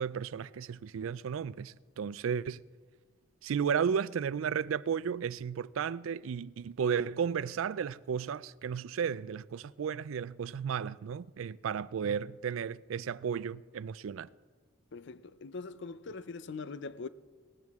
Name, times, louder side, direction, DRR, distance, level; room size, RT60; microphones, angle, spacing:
voice 1, 0.0-2.6 3.4-14.3, right 7 dB, 80° right, 0.4 m, -34 dB
voice 2, 14.9-17.1, left 4 dB, 60° left, 0.5 m, -42 dB
18.5 x 14.0 x 3.6 m
head